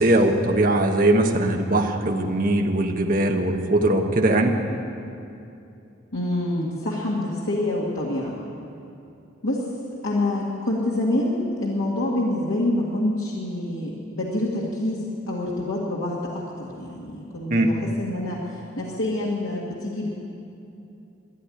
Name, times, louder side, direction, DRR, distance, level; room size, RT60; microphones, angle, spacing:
voice 1, 0.0-4.6 17.5-17.7, right 1 dB, 40° right, 3 dB, 1.1 m, -20 dB
voice 2, 6.1-8.3 9.4-9.6 10.0-18.4 18.8-20.1, left 1 dB, 90° left, -5 dB, 1.9 m, -26 dB
13.5 x 10.0 x 9.9 m, 2.7 s
head